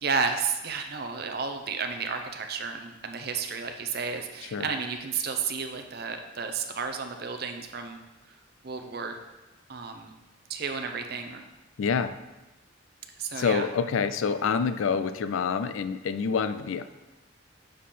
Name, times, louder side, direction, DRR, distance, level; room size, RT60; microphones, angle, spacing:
voice 1, 0.0-8.0 8.6-9.2 9.7-10.1 10.5-11.4 13.2-13.7, right 5 dB, 50° right, 6 dB, 0.6 m, -32 dB
voice 2, 11.8-12.2 13.4-16.9, left 5 dB, 80° left, 11 dB, 0.4 m, -27 dB
6.5 x 3.7 x 5.7 m, 1.1 s
head